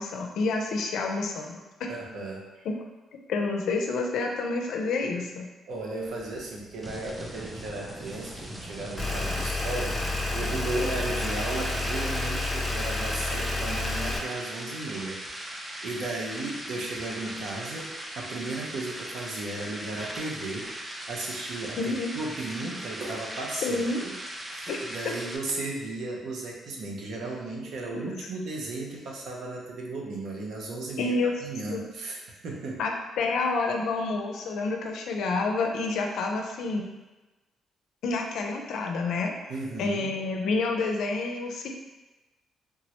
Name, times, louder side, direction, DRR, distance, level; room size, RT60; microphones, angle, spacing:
voice 1, 0.0-1.9 2.7-2.8 3.3-5.5 21.8-22.1 23.6-24.0 24.7-24.8 25.0-25.1 31.0-31.3 31.7-31.9 32.8-36.8 38.0-39.3 39.8-41.7, left 3 dB, 75° left, 2 dB, 0.4 m, -28 dB
voice 2, 1.9-2.7 5.7-17.9 18.2-24.1 24.5-31.1 31.4-32.8 39.5-40.1, right 2 dB, 75° right, -2 dB, 0.7 m, -35 dB
sound 1, 5.7-25.4, right 1 dB, 15° right, 0.4 m, -39 dB
sound 2, 9.0-14.2, left 2 dB, 5° left, 0.8 m, -30 dB
3.5 x 2.0 x 2.9 m, 1.1 s
cardioid pair, 90°, 0 cm